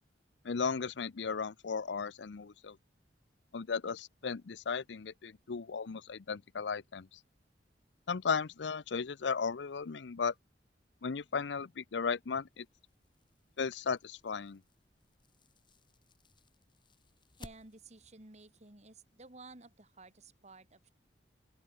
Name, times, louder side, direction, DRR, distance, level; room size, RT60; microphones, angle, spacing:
voice 1, 0.4-2.8 3.5-7.1 8.1-10.3 11.0-12.7 13.6-14.6, left 5 dB, 85° left, 0.6 m, -35 dB
sound 1, 12.5-18.1, left 2 dB, 25° left, 2.8 m, -60 dB
voice 2, 17.4-20.9, right 3 dB, 40° right, 2.8 m, -54 dB
open air
head